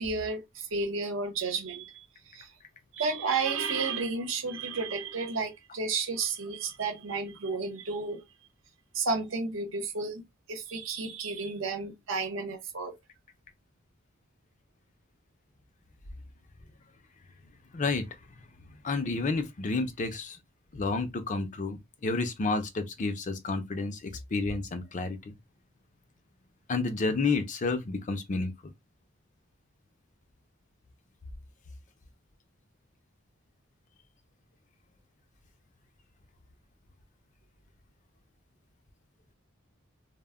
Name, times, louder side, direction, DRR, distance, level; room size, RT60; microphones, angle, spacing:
voice 1, 0.0-1.9 2.3-2.5 2.9-8.2 8.9-10.2 10.5-13.0, right 4 dB, 75° right, 0.8 m, -32 dB
voice 2, 17.7-18.1 18.8-20.4 20.7-25.3 26.7-28.7, left 3 dB, 40° left, 0.5 m, -30 dB
2.1 x 2.0 x 3.5 m
head